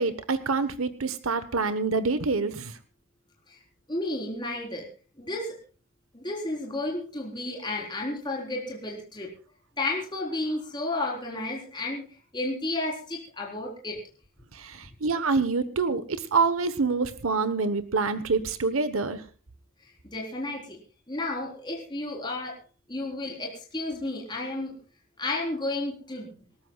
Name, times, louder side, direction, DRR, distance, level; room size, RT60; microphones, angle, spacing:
voice 1, 0.0-2.8 14.5-19.2, right 4 dB, 90° right, 12 dB, 1.2 m, -26 dB
voice 2, 3.9-4.9 5.2-5.6 6.1-9.3 9.8-12.1 12.3-14.0 20.1-20.8 21.1-22.6 22.9-24.8 25.2-26.3, left 2 dB, 20° left, -1 dB, 4.1 m, -32 dB
27.0 x 13.0 x 2.4 m, 0.36 s
head